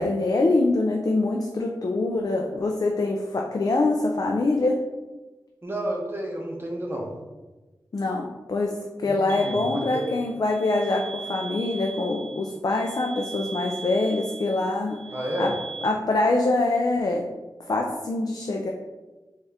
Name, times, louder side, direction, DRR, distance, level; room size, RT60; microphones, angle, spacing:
voice 1, 0.0-4.7 7.9-8.7 9.0-15.0 15.4-15.5 15.8-17.2 17.7-18.7, left 2 dB, 50° left, 1 dB, 0.4 m, -24 dB
voice 2, 5.6-7.1 9.0-10.0 15.1-15.5, right 1 dB, 30° right, 0 dB, 0.8 m, -31 dB
sound 1, 9.3-15.9, right 4 dB, 85° right, 0.4 m, -39 dB
4.1 x 2.4 x 3.4 m, 1.2 s
wide cardioid pair, 75°, 8 cm